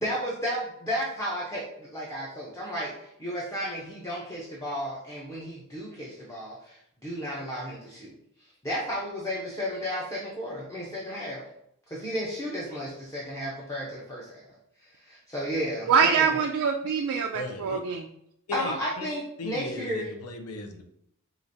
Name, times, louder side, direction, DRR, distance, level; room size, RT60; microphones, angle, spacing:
voice 1, 0.0-8.1 8.6-11.4 11.9-14.5 14.8-16.3 18.5-20.1, equal, 15° left, -5 dB, 0.6 m, -33 dB
voice 2, 15.9-18.1, right 6 dB, 70° right, 2 dB, 0.3 m, -24 dB
voice 3, 17.3-17.8 18.5-19.1 19.4-20.8, left 3 dB, 85° left, 5 dB, 0.6 m, -37 dB
4.7 x 2.5 x 2.6 m, 0.75 s
head